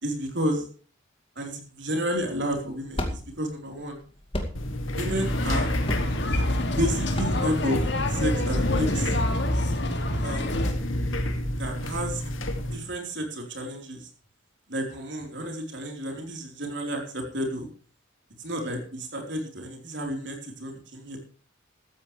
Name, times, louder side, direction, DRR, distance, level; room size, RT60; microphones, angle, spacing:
voice 1, 0.0-0.7 1.4-4.0 4.9-5.7 6.8-7.8 8.1-9.2 10.2-10.6 11.6-12.2 12.7-14.1 14.7-17.7 18.4-21.2, equal, 60° right, 2 dB, 4.1 m, -31 dB
sound 1, 2.1-8.3, left 1 dB, 30° left, 2.4 m, -35 dB
sound 2, 4.5-12.8, left 1 dB, 85° left, 2.3 m, -29 dB
sound 3, 4.9-10.7, left 1 dB, 60° left, 2.4 m, -28 dB
15.5 x 13.5 x 3.3 m, 0.40 s
head